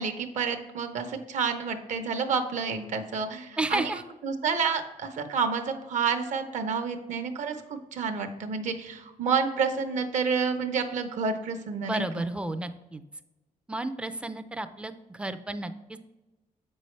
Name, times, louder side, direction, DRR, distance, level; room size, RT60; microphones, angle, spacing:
voice 1, 0.0-12.3, right 5 dB, 65° right, 7 dB, 0.8 m, -29 dB
voice 2, 3.6-4.0 11.8-13.0 13.7-16.0, right 2 dB, 10° right, 11 dB, 0.3 m, -32 dB
7.7 x 5.5 x 3.1 m, 1.1 s
wide cardioid pair, 175°, 14 cm